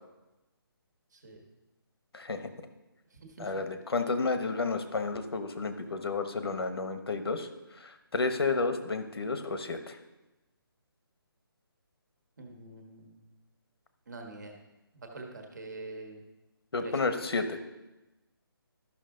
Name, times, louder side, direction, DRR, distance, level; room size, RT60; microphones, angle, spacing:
voice 1, 1.1-1.4 3.1-3.5 12.4-13.2 14.1-14.5 14.9-16.2 16.8-17.0, right 3 dB, 50° right, 3 dB, 1.5 m, -45 dB
voice 2, 2.1-2.5 3.4-7.5 7.8-10.0 16.7-17.6, left 3 dB, 90° left, 8 dB, 1.1 m, -31 dB
13.0 x 6.0 x 3.8 m, 1.0 s
hypercardioid pair, 175°, 13 cm